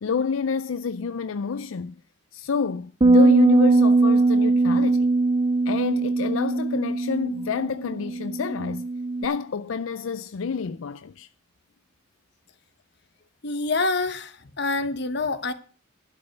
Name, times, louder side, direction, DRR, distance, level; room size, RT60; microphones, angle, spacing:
voice 1, 0.0-1.9 2.3-5.1 5.7-8.9 9.2-11.3, left 6 dB, 85° left, 0.5 m, -28 dB
sound 1, 3.0-9.3, right 3 dB, 25° right, 0.4 m, -20 dB
voice 2, 13.4-15.5, left 3 dB, 55° left, 1.1 m, -26 dB
12.0 x 5.5 x 8.1 m
head